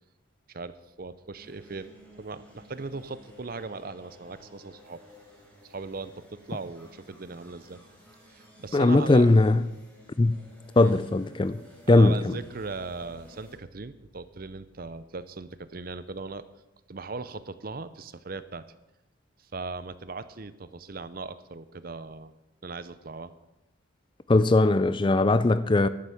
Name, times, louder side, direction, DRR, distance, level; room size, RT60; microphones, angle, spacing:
voice 1, 0.5-1.9 2.2-5.0 5.6-7.8 8.3-9.3 10.7-10.9 11.9-16.5 16.9-18.6 19.4-22.3 22.6-23.3, right 3 dB, 45° right, 0.6 m, -39 dB
sound 1, 1.4-13.5, equal, 5° left, 3.9 m, -53 dB
voice 2, 8.7-9.6 10.2-10.4 10.8-11.6 11.9-12.4 24.3-25.9, left 2 dB, 25° left, 0.4 m, -20 dB
12.0 x 10.0 x 7.0 m
head